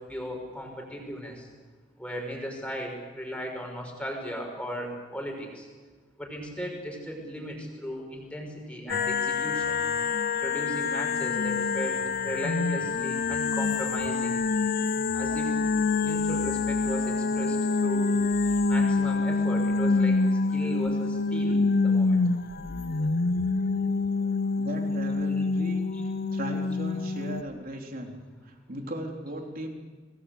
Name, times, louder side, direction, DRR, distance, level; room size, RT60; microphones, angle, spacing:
voice 1, 0.0-1.4 2.0-5.7 6.2-9.7 10.4-14.3 15.1-15.5 16.0-18.2 18.7-20.2 20.5-22.2 25.9-26.0, equal, 5° left, 1 dB, 6.0 m, -36 dB
sound 1, 8.9-27.4, left 4 dB, 50° left, 0.6 m, -26 dB
voice 2, 24.6-25.8 26.3-28.1 28.5-29.7, right 1 dB, 50° right, 2 dB, 3.7 m, -37 dB
27.5 x 19.0 x 8.2 m, 1.4 s
head